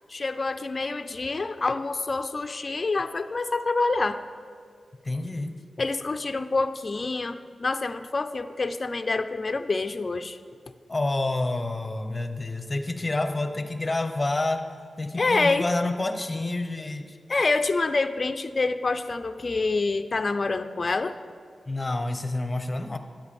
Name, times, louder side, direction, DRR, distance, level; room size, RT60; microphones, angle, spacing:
voice 1, 0.1-4.2 5.8-10.4 15.2-15.7 17.3-21.2, left 3 dB, 45° left, 10 dB, 0.5 m, -27 dB
voice 2, 5.0-5.5 10.9-14.7 15.0-17.2 21.7-23.0, left 2 dB, 25° left, 8 dB, 0.9 m, -28 dB
10.5 x 8.1 x 7.1 m, 2.1 s
wide cardioid pair, 80°, 0 cm